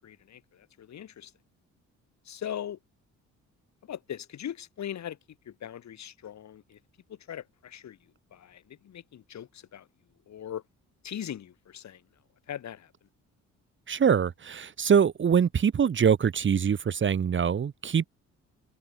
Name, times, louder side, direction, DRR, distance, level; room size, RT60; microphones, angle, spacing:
voice 1, 0.0-1.3 2.2-2.8 3.8-6.8 7.1-9.9 10.3-10.6 11.0-12.0 12.5-12.9, left 10 dB, 65° left, 7.8 m, -40 dB
voice 2, 13.9-18.1, right 7 dB, 40° right, 1.2 m, -24 dB
cardioid pair, 90°, 30 cm